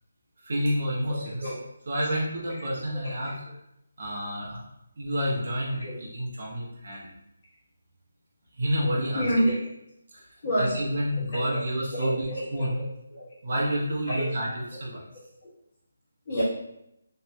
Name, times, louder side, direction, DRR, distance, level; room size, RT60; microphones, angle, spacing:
voice 1, 0.4-1.5 1.9-3.3 4.0-4.6 5.0-7.1 8.5-9.3 10.1-10.3 10.6-12.8 13.4-15.0, equal, 45° right, -4 dB, 0.9 m, -29 dB
voice 2, 1.2-1.6 5.8-6.0 9.1-9.6 10.4-10.7 11.3-11.6 11.9-12.7 13.1-13.3 14.1-14.2 16.3-16.4, equal, 30° left, -11 dB, 1.1 m, -28 dB
3.5 x 2.8 x 2.2 m, 0.82 s
hypercardioid pair, 175°, 0 cm